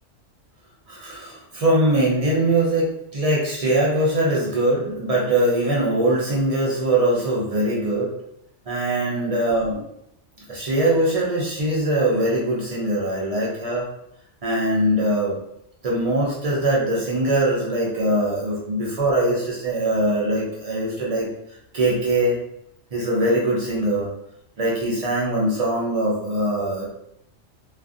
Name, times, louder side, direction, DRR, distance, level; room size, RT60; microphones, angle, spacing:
voice 1, 0.9-8.1 8.7-9.8 10.5-13.9 14.4-15.4 15.8-21.3 21.7-22.4 22.9-24.1 24.6-26.8, right 1 dB, 70° right, -5 dB, 0.3 m, -22 dB
2.4 x 2.4 x 2.4 m, 0.77 s
omnidirectional pair, 1.3 m